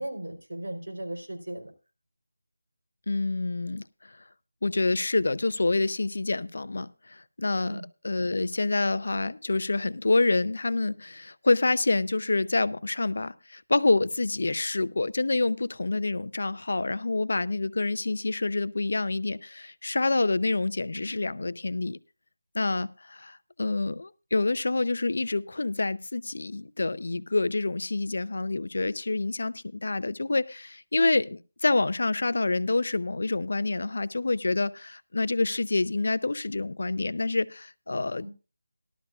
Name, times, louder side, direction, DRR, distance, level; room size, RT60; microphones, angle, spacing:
voice 1, 0.0-1.7 7.7-7.9 38.1-38.3, right 1 dB, 85° right, 5 dB, 3.9 m, -36 dB
voice 2, 3.1-4.1 4.6-22.0 22.5-38.3, left 2 dB, 60° left, 16 dB, 0.6 m, -27 dB
18.5 x 12.0 x 2.4 m, 0.31 s
figure-of-eight pair, 175°, 0 cm